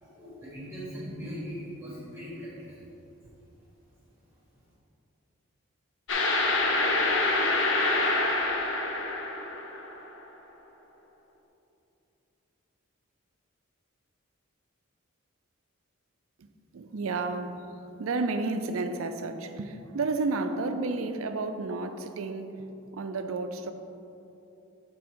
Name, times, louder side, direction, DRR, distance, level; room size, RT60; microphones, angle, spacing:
voice 1, 0.0-2.8, equal, 10° right, -9 dB, 1.5 m, -40 dB
sound 1, 6.1-10.0, left 2 dB, 60° left, 0.7 m, -26 dB
voice 2, 16.7-17.6 18.0-23.7, right 3 dB, 75° right, 8 dB, 0.4 m, -31 dB
7.2 x 4.2 x 4.6 m, 2.9 s
head